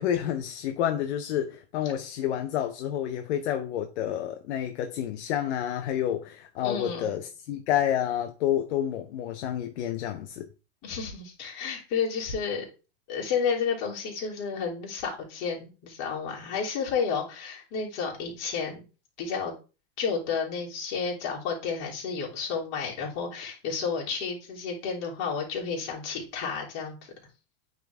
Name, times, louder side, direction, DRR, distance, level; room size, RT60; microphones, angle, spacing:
voice 1, 0.0-10.5, left 10 dB, 65° left, 0.9 m, -29 dB
voice 2, 6.6-7.2 10.8-12.6 13.1-18.8 19.2-19.5 20.0-27.0, left 6 dB, 45° left, 3.2 m, -31 dB
9.1 x 3.9 x 3.5 m
supercardioid pair, 150°, 36 cm